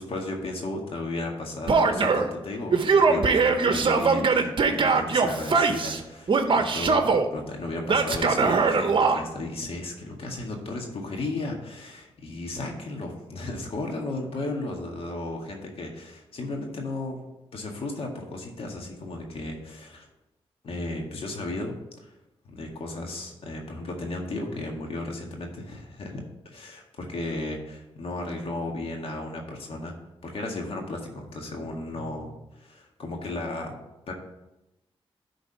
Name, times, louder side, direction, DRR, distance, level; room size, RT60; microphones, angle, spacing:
voice 1, 0.0-7.0 7.3-17.2 17.5-20.1 20.6-21.7 22.0-22.1 22.5-29.9 30.2-33.8 34.1-34.2, left 2 dB, 65° left, 1 dB, 1.9 m, -34 dB
Male speech man speaking / Yell, 1.7-2.3 2.7-6.0 6.3-7.3 7.9-9.2, right 4 dB, 55° right, 0.9 m, -21 dB
11.0 x 3.9 x 5.1 m, 0.94 s
cardioid pair, 65°, 10 cm